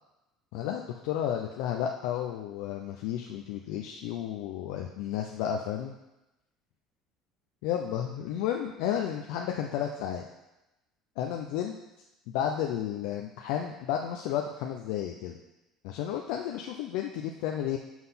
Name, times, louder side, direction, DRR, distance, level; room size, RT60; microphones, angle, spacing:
voice 1, 0.5-5.9 7.6-10.3 11.2-11.7 12.3-15.4 15.8-17.8, left 10 dB, 80° left, 2 dB, 0.6 m, -32 dB
6.2 x 5.7 x 5.7 m, 0.96 s
supercardioid pair, 105°, 0 cm